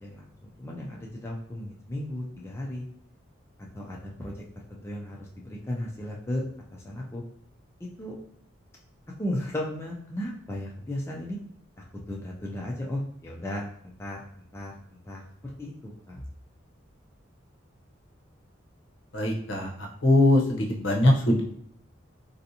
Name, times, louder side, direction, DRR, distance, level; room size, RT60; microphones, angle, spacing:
voice 1, 0.0-2.9 3.7-4.4 4.7-6.5 6.7-7.2 8.0-8.2 9.2-11.4 11.8-16.2, left 1 dB, 15° left, -3 dB, 0.3 m, -35 dB
voice 2, 19.1-21.4, left 1 dB, 65° left, 0 dB, 0.7 m, -22 dB
3.3 x 2.6 x 2.7 m, 0.67 s
head